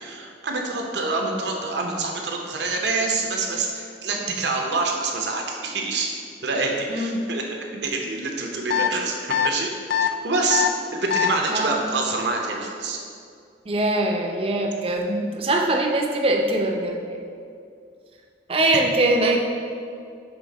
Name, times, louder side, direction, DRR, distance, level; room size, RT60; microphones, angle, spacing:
voice 1, 0.0-6.1 6.4-9.7 10.0-10.6 10.9-13.0, right 3 dB, 80° right, 1 dB, 0.8 m, -26 dB
voice 2, 6.9-7.2 11.5-11.8 13.7-17.2 18.5-19.4, right 2 dB, 30° right, 2 dB, 0.5 m, -22 dB
sound 1, 8.7-8.9 9.3-9.5 9.9-10.1 10.5-10.7 11.1-11.3, left 9 dB, 70° left, 0.3 m, -21 dB
6.9 x 3.4 x 4.0 m, 2.3 s
head